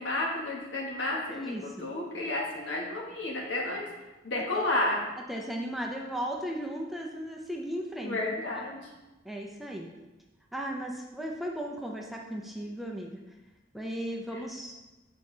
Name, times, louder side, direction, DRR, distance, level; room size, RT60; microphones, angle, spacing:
voice 1, 0.0-1.5 1.8-3.8 4.2-5.0 8.0-8.8, left 2 dB, 70° left, -2 dB, 1.3 m, -31 dB
voice 2, 1.3-1.9 4.5-4.6 5.3-8.2 8.5-8.7 9.2-9.9 10.5-13.2 13.7-14.7, equal, ahead, 0 dB, 0.5 m, -36 dB
6.7 x 4.3 x 3.2 m, 1.1 s
head